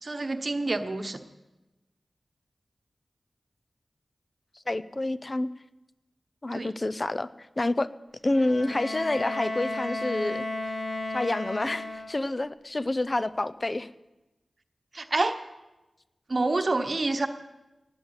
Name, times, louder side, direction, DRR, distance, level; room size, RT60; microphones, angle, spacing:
voice 1, 0.0-1.2 6.5-6.7 14.9-15.4 16.3-17.3, right 2 dB, 50° right, 7 dB, 1.0 m, -27 dB
voice 2, 4.7-5.5 6.4-7.3 7.6-7.9 8.2-10.4 11.1-13.9, left 2 dB, 35° left, 15 dB, 0.6 m, -28 dB
Bowed string instrument, 8.3-12.4, left 2 dB, 75° left, 2.5 m, -34 dB
18.5 x 7.5 x 8.1 m, 1.0 s
wide cardioid pair, 75°, 0 cm